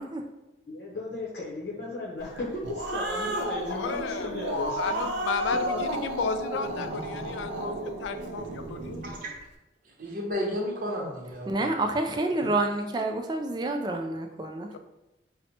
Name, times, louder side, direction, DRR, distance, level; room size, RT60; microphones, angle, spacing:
voice 1, 0.7-5.1 5.5-5.8, left 2 dB, 55° left, -6 dB, 0.7 m, -35 dB
Growling, 2.4-9.2, right 1 dB, 80° right, 0.5 m, -33 dB
voice 2, 3.7-9.0, left 5 dB, 90° left, 10 dB, 0.3 m, -33 dB
voice 3, 10.0-11.8, equal, 50° right, -2 dB, 0.8 m, -32 dB
voice 4, 11.5-14.7, right 2 dB, 25° right, 4 dB, 0.3 m, -28 dB
5.5 x 2.1 x 2.8 m, 0.99 s
head